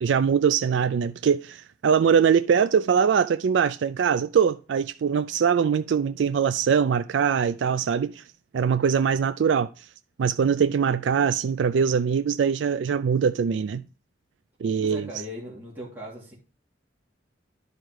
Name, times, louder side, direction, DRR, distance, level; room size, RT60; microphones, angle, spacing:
voice 1, 0.0-8.2 8.5-9.9 10.2-13.8 14.6-15.1, right 7 dB, 75° right, 0.3 m, -22 dB
voice 2, 14.8-16.3, left 1 dB, 10° right, 3.1 m, -38 dB
10.5 x 5.0 x 4.7 m
head